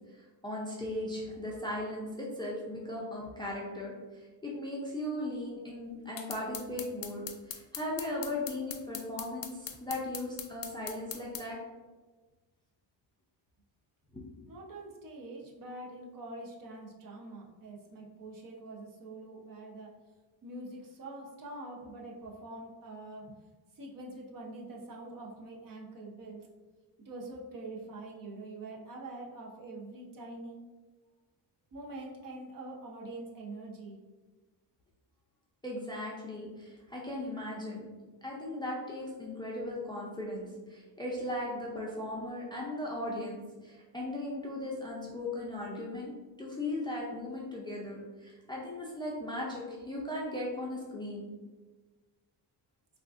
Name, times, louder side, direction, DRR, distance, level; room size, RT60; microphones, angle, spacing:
voice 1, 0.1-11.6 14.1-14.2 35.6-37.9 38.2-43.4 43.6-46.1 46.4-51.2, left 1 dB, 10° left, -4 dB, 0.4 m, -37 dB
sound 1, 6.2-11.4, left 9 dB, 75° left, 0.5 m, -41 dB
voice 2, 14.5-19.9 20.4-23.3 23.7-26.5 27.1-30.6 31.7-34.0, right 2 dB, 50° right, -2 dB, 0.6 m, -45 dB
3.5 x 2.4 x 2.4 m, 1.3 s
cardioid pair, 125°, 43 cm